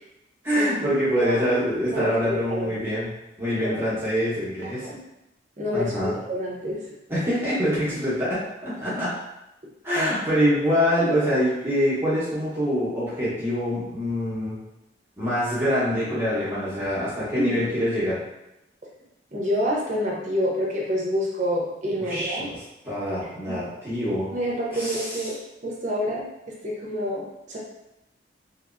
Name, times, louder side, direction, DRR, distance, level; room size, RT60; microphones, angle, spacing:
voice 1, 0.4-4.9 5.7-6.2 7.1-9.1 9.8-14.6 15.2-18.2 22.0-22.6 22.8-24.3 24.7-25.3, equal, 15° right, -12 dB, 1.0 m, -25 dB
voice 2, 1.9-2.8 3.6-3.8 4.8-5.0 5.6-5.9 6.3-6.8 17.3-17.6 19.3-22.5 23.5-23.6 24.3-25.3 25.6-26.2 26.6-27.6, equal, 45° right, -4 dB, 0.8 m, -27 dB
2.9 x 2.9 x 2.6 m, 0.91 s
head